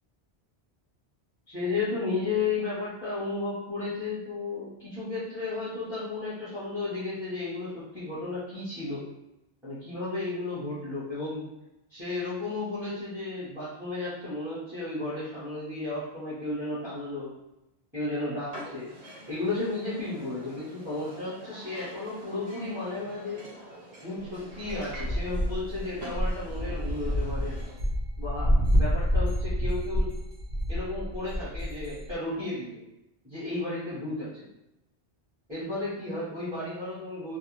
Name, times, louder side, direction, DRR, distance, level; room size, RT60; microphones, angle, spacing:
voice 1, 1.5-9.1 9.6-11.4 11.9-17.3 17.9-18.9 19.3-23.5 24.0-27.6 28.2-30.1 30.7-32.8 33.2-34.4 35.5-37.4, left 3 dB, ahead, -13 dB, 0.9 m, -33 dB
sound 1, 18.5-27.8, right 1 dB, 80° right, 1.3 m, -46 dB
sound 2, 24.6-32.1, equal, 60° right, 1.0 m, -28 dB
2.5 x 2.1 x 3.0 m, 0.90 s
omnidirectional pair, 1.1 m